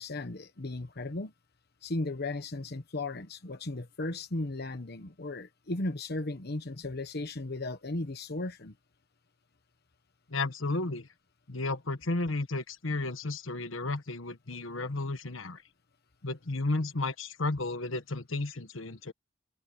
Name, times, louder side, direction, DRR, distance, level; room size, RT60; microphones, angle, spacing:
voice 1, 0.0-1.3 1.8-8.7, left 2 dB, 55° left, 1.2 m, -36 dB
voice 2, 10.3-11.1 11.5-15.6 16.2-19.1, left 2 dB, 80° left, 1.4 m, -33 dB
open air
head